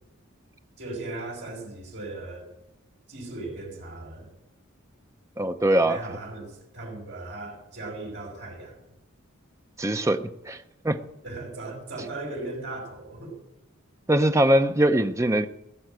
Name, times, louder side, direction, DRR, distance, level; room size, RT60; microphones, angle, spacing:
voice 1, 0.8-2.5 3.1-4.3 5.9-8.9 11.2-13.4, right 2 dB, 55° right, 0 dB, 5.5 m, -37 dB
voice 2, 5.4-6.0 9.8-10.6 10.8-11.0 14.1-15.5, right 1 dB, 15° right, 8 dB, 0.6 m, -22 dB
16.5 x 7.1 x 9.0 m, 0.84 s
head